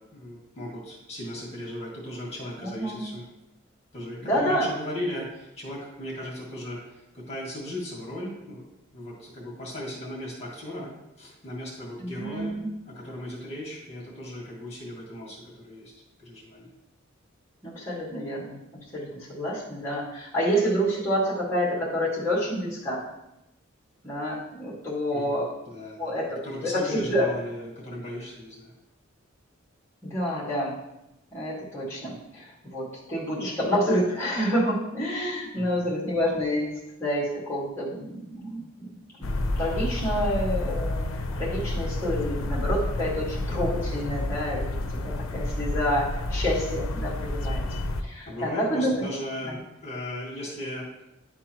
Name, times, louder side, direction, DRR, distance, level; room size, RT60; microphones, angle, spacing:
voice 1, 0.0-3.2 3.9-8.7 8.9-10.9 11.2-12.5 12.8-15.9 16.2-16.7 25.1-26.1 26.4-28.7 35.6-35.9 48.3-50.9, left 1 dB, 30° left, -5 dB, 2.0 m, -37 dB
voice 2, 2.6-3.0 4.3-4.7 12.0-12.7 17.6-18.6 18.9-23.0 24.0-25.5 26.0-27.3 30.0-30.8 31.3-36.7 37.0-38.6 38.9-39.3 39.6-41.0 41.3-44.7 45.0-47.6 48.0-49.0 49.4-49.6, equal, 10° left, -8 dB, 1.8 m, -28 dB
sound 1, 39.2-48.0, left 2 dB, 85° left, 0.5 m, -29 dB
10.5 x 3.6 x 3.0 m, 0.88 s
head